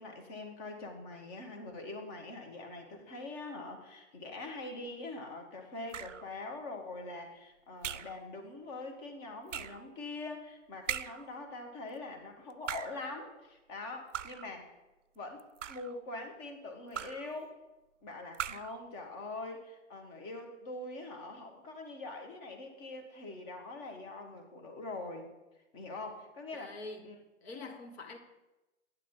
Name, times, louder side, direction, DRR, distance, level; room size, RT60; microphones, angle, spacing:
voice 1, 0.0-14.7 15.1-17.6 18.0-25.3 25.7-27.2, left 2 dB, 30° left, 4 dB, 1.6 m, -43 dB
sound 1, 5.9-6.3 7.8-8.2 9.5-9.9 10.9-11.3 12.5-13.1 14.1-14.6 15.4-16.0 16.9-17.3 18.3-18.8, right 9 dB, 85° right, 0.5 m, -39 dB
voice 2, 26.5-27.1 27.4-28.2, left 3 dB, 60° left, 5 dB, 1.5 m, -45 dB
9.5 x 7.2 x 3.8 m, 1.0 s
figure-of-eight pair, 120°, 36 cm